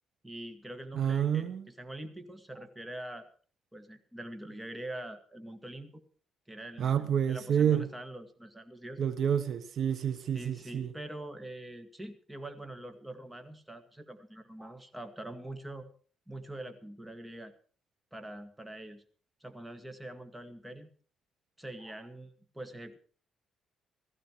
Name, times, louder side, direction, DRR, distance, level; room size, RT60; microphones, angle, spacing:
voice 1, 0.2-3.3 3.7-6.0 6.5-9.1 10.3-15.9 16.3-17.5 18.1-19.0 19.4-20.9 21.6-23.0, right 1 dB, 10° right, 2.1 m, -44 dB
voice 2, 0.9-1.7 6.8-7.9 9.0-10.9, right 8 dB, 60° right, 1.3 m, -28 dB
16.0 x 14.5 x 4.9 m
cardioid pair, 90°, 0 cm